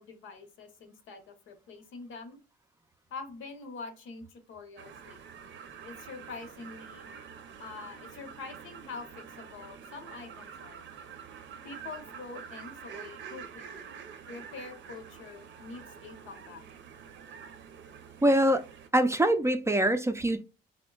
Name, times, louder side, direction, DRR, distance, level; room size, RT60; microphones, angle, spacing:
voice 1, 0.0-2.4 3.1-5.5 5.8-7.1 7.6-10.9 11.6-14.0 14.3-16.6, left 4 dB, 85° left, 0.9 m, -45 dB
sound 1, 4.8-18.9, right 7 dB, 70° right, 0.6 m, -47 dB
voice 2, 18.2-18.7 18.9-20.4, right 1 dB, 15° right, 0.4 m, -24 dB
5.0 x 2.1 x 2.3 m
cardioid pair, 90°, 20 cm